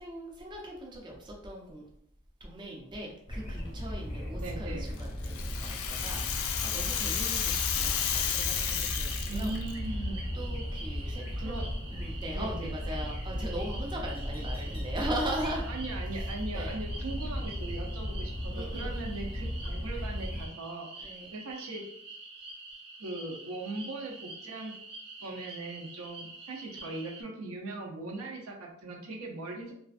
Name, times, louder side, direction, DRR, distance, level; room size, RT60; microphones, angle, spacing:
voice 1, 0.0-1.9 2.4-9.5 10.3-11.6 11.9-15.7 16.5-16.8 18.5-19.0 21.0-21.3, right 1 dB, 20° right, -2 dB, 0.4 m, -39 dB
sound 1, 3.3-20.5, equal, 25° left, 0.6 m, -36 dB
voice 2, 4.4-4.9 9.3-10.2 11.0-11.7 12.3-12.7 15.7-21.8 23.0-24.7 25.2-29.7, right 2 dB, 85° right, 1 dB, 0.6 m, -39 dB
Rattle (instrument), 5.0-9.7, left 8 dB, 70° left, 0.3 m, -32 dB
sound 2, 8.5-27.2, right 3 dB, 50° right, 0.7 m, -47 dB
2.4 x 2.3 x 2.4 m, 0.70 s
head